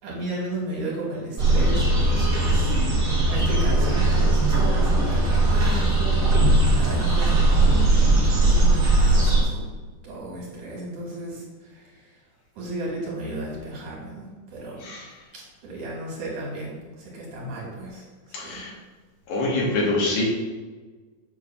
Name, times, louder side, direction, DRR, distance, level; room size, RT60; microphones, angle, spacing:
voice 1, 0.0-2.8 3.3-6.3 6.7-9.7 10.0-12.2 12.5-14.9 15.3-18.7, right 2 dB, 60° right, -4 dB, 3.1 m, -35 dB
sound 1, 1.4-9.4, right 2 dB, 40° right, 1.5 m, -19 dB
voice 2, 18.3-18.7 19.3-20.2, left 2 dB, 75° left, -2 dB, 3.0 m, -25 dB
7.7 x 3.3 x 5.9 m, 1.3 s
omnidirectional pair, 4.2 m